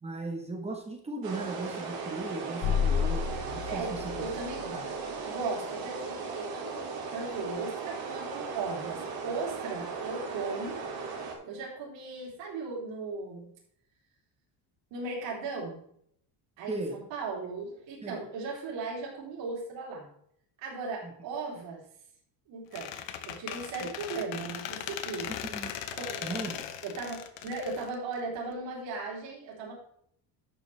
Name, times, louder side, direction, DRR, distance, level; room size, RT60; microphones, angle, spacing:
voice 1, 0.0-4.3 4.7-4.9 16.7-17.0 18.0-18.2 21.0-21.1 25.4-25.7 26.2-26.6, right 2 dB, 15° right, 2 dB, 1.3 m, -37 dB
sound 1, 1.2-11.3, right 4 dB, 55° right, 2.8 m, -37 dB
sound 2, 2.6-5.0, left 7 dB, 50° left, 0.9 m, -31 dB
voice 2, 3.7-4.9 5.3-10.8 11.4-13.5 14.9-15.8 16.6-20.1 20.6-21.8 22.5-25.3 25.9-26.3 26.8-29.7, right 4 dB, 85° right, -3 dB, 3.5 m, -37 dB
Squeak, 22.7-28.5, left 10 dB, 80° left, 1.1 m, -39 dB
11.0 x 7.0 x 3.4 m, 0.68 s
cardioid pair, 175°, 43 cm